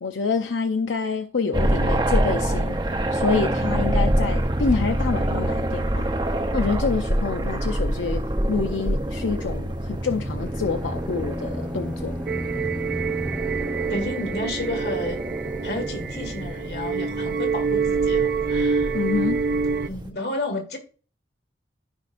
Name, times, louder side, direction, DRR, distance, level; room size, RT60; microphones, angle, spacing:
voice 1, 0.0-2.8 3.1-6.1 6.5-12.2 18.9-19.4, left 4 dB, 85° left, 0.6 m, -27 dB
sound 1, 1.5-20.1, right 1 dB, 25° right, 0.8 m, -26 dB
sound 2, 10.4-14.7, left 1 dB, ahead, 0.4 m, -35 dB
sound 3, 12.3-19.9, right 5 dB, 55° right, 0.4 m, -26 dB
voice 2, 13.9-15.2 15.6-18.9 19.9-20.8, left 2 dB, 60° left, 1.9 m, -31 dB
14.5 x 5.0 x 2.6 m
head